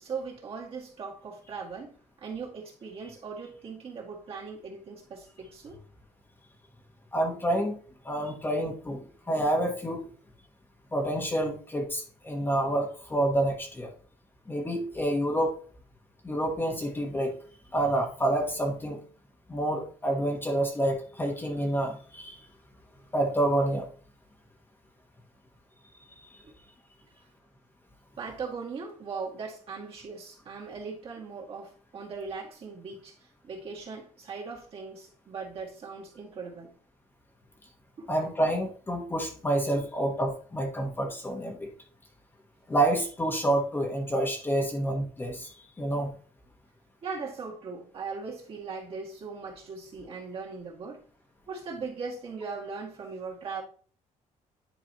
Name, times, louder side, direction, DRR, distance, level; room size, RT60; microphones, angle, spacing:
voice 1, 0.0-1.9 2.2-5.8 26.4-26.5 28.2-36.7 38.0-38.1 47.0-51.0 51.5-53.6, right 5 dB, 45° right, 2.0 m, -39 dB
voice 2, 7.1-7.8 8.0-9.0 9.3-10.1 10.9-13.9 14.5-15.6 16.2-17.4 17.7-19.0 19.5-22.4 23.1-23.9 26.2-26.4 38.1-41.7 42.7-46.1, right 1 dB, 15° left, 1.1 m, -28 dB
10.0 x 4.1 x 2.9 m
cardioid pair, 145°, 13 cm